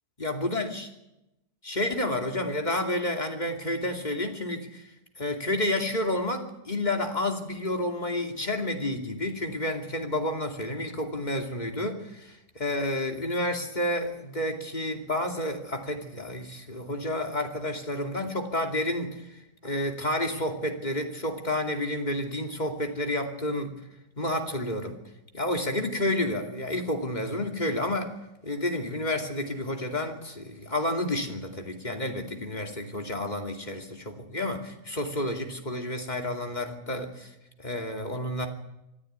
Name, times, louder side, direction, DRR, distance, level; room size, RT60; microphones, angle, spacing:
voice 1, 0.2-0.9 1.6-4.8 5.2-23.7 24.2-25.0 25.3-28.1 28.4-37.3 37.6-38.5, left 1 dB, 25° left, 3 dB, 2.8 m, -30 dB
25.0 x 14.0 x 9.5 m, 0.91 s
omnidirectional pair, 1.8 m